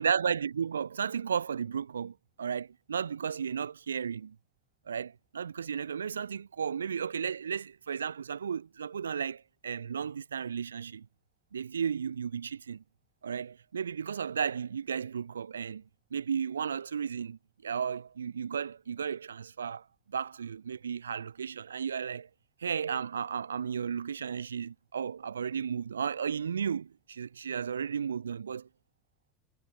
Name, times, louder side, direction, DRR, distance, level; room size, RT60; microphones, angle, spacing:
voice 1, 0.0-4.3 4.9-11.1 11.5-12.8 13.2-15.8 16.1-22.3 22.6-28.7, right 7 dB, 85° right, 1.1 m, -34 dB
hypercardioid pair, 75°, 0 cm